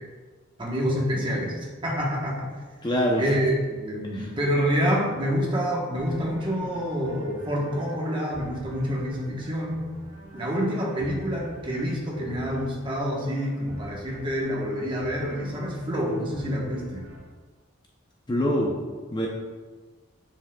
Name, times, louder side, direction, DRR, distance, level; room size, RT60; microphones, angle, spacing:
voice 1, 0.6-2.5 3.2-9.9 10.3-17.1, equal, 25° right, -3 dB, 1.0 m, -27 dB
voice 2, 2.8-3.3 4.1-4.3 18.3-18.7 19.1-19.3, equal, 20° left, -1 dB, 0.5 m, -24 dB
sound 1, 5.9-17.3, right 1 dB, 90° right, 1.9 m, -46 dB
7.0 x 6.2 x 2.2 m, 1.4 s
head